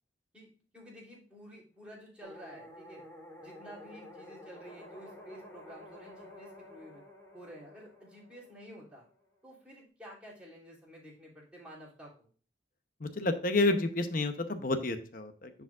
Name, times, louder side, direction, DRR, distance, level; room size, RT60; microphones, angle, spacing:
voice 1, 0.3-3.0 3.4-7.0 7.3-9.0 9.4-12.3, equal, 5° right, -5 dB, 3.1 m, -51 dB
sound 1, 2.2-9.2, left 1 dB, 15° left, 1.7 m, -51 dB
voice 2, 13.0-15.5, left 2 dB, 45° left, 8 dB, 0.8 m, -30 dB
9.8 x 5.0 x 2.4 m, 0.41 s
head